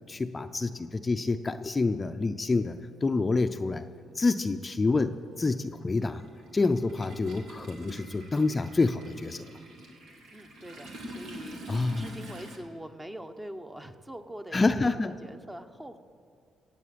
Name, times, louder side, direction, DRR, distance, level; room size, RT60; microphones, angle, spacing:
voice 1, 0.1-3.9 4.1-6.2 6.5-9.5 11.7-12.1 14.5-15.1, left 3 dB, 25° left, 8 dB, 0.5 m, -27 dB
Toilet flush, 2.1-2.2 3.5-3.6 3.9-12.6, equal, 80° right, 2.5 m, -45 dB
voice 2, 10.3-11.6 11.9-14.9 15.2-16.0, right 1 dB, 10° right, 8 dB, 1.0 m, -43 dB
17.0 x 8.6 x 7.6 m, 2.2 s
cardioid pair, 90°, 0 cm